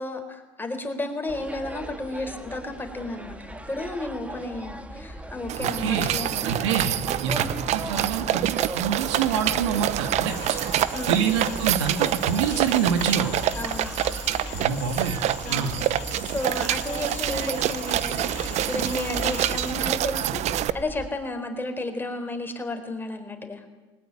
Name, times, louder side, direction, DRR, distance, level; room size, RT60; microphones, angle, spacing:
voice 1, 0.0-6.5 10.9-11.2 13.5-14.1 14.4-14.6 15.4-15.8 16.3-23.8, left 2 dB, 15° left, 6 dB, 4.2 m, -33 dB
sound 1, 1.3-21.1, right 1 dB, 10° right, 2.1 m, -38 dB
sound 2, 5.5-20.7, right 13 dB, 50° right, 0.8 m, -27 dB
voice 2, 5.8-6.1 6.4-10.3 11.1-13.3 14.5-15.2 15.5-15.7, right 7 dB, 80° right, 7 dB, 2.5 m, -26 dB
sound 3, 10.3-19.7, left 11 dB, 55° left, 3.4 m, -42 dB
20.5 x 18.5 x 9.3 m, 1.2 s
hypercardioid pair, 90°, 15 cm